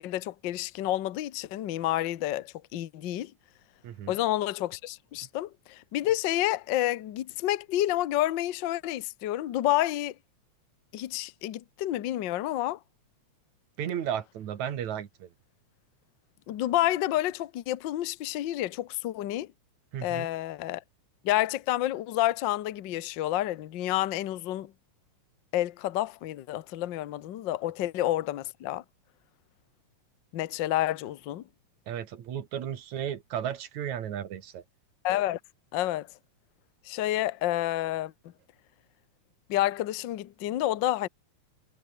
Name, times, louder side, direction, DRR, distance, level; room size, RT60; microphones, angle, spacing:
voice 1, 0.0-3.3 4.1-10.1 10.9-12.8 16.5-19.5 20.0-20.8 21.2-24.7 25.5-28.8 30.3-31.4 35.0-35.4 35.7-36.1 36.8-38.1 39.5-41.1, left 14 dB, 70° left, 1.1 m, -29 dB
voice 2, 13.8-15.3 19.9-20.3 31.9-34.6, right 9 dB, 70° right, 3.0 m, -34 dB
omnidirectional pair, 3.4 m